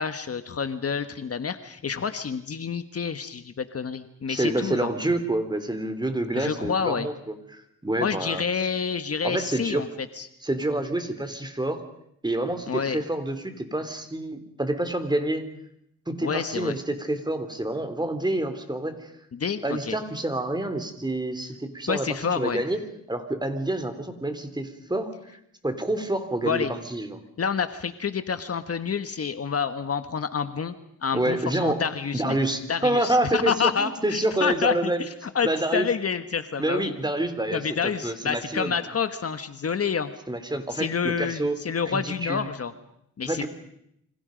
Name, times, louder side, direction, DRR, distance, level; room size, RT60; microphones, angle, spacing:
voice 1, 0.0-4.9 6.3-7.1 8.0-9.9 10.2-10.3 12.7-13.0 16.2-16.7 19.3-20.0 21.9-22.6 26.4-26.7 27.4-30.7 31.0-32.4 32.7-35.1 35.3-36.9 37.5-40.1 40.7-42.7 43.2-43.5, left 6 dB, 50° left, 10 dB, 1.5 m, -28 dB
voice 2, 4.3-8.4 9.2-9.8 10.4-11.8 12.2-15.5 16.1-19.1 19.6-22.8 23.1-25.1 25.6-27.2 31.1-31.8 32.1-35.1 35.4-35.9 36.6-38.8 40.3-41.6 41.9-42.5 43.2-43.5, right 1 dB, 15° right, 9 dB, 3.3 m, -28 dB
28.5 x 26.0 x 5.3 m, 0.76 s
cardioid pair, 90°, 31 cm